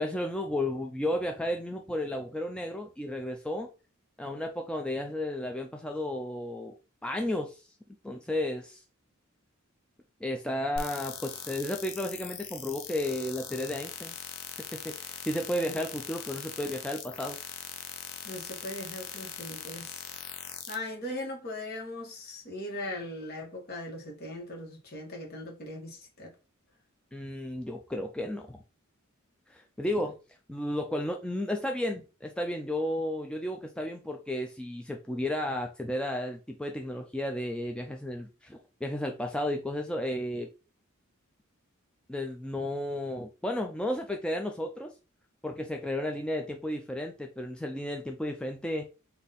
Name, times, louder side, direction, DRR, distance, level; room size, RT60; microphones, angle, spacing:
voice 1, 0.0-3.7 4.2-6.7 7.0-7.7 8.0-8.8 10.2-14.2 14.7-17.4 27.1-28.6 29.5-30.2 30.5-40.5 42.1-44.9 45.4-48.8, left 1 dB, 5° left, 0.3 m, -33 dB
sound 1, 10.8-20.7, left 8 dB, 90° left, 0.7 m, -41 dB
voice 2, 18.2-20.0 20.5-26.3, left 1 dB, 50° left, 1.4 m, -39 dB
4.0 x 2.7 x 4.1 m
head